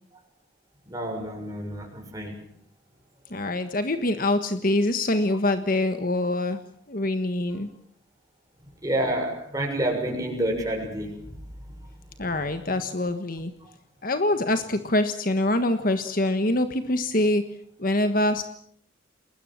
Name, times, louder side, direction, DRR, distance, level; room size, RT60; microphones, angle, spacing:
voice 1, 0.9-2.4 8.8-11.4, right 1 dB, 20° right, 2 dB, 6.5 m, -29 dB
voice 2, 3.3-6.6 6.9-7.7 12.2-13.5 14.0-17.4 17.8-18.4, left 1 dB, 45° left, 9 dB, 1.4 m, -24 dB
30.0 x 20.5 x 7.4 m, 0.66 s
head